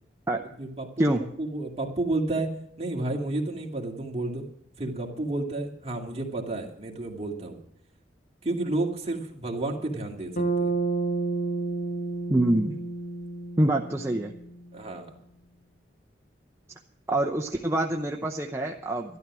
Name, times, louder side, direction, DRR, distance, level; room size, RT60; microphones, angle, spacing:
voice 1, 0.6-2.5 2.8-4.4 4.8-7.6 8.4-10.7 14.7-15.1, right 2 dB, 35° right, 0 dB, 2.2 m, -31 dB
Bass guitar, 10.4-14.7, right 3 dB, 45° left, 1.1 m, -30 dB
voice 2, 12.3-12.8 13.6-14.3 17.1-19.2, right 1 dB, 15° right, 1 dB, 0.7 m, -25 dB
12.5 x 12.0 x 6.1 m, 0.72 s
head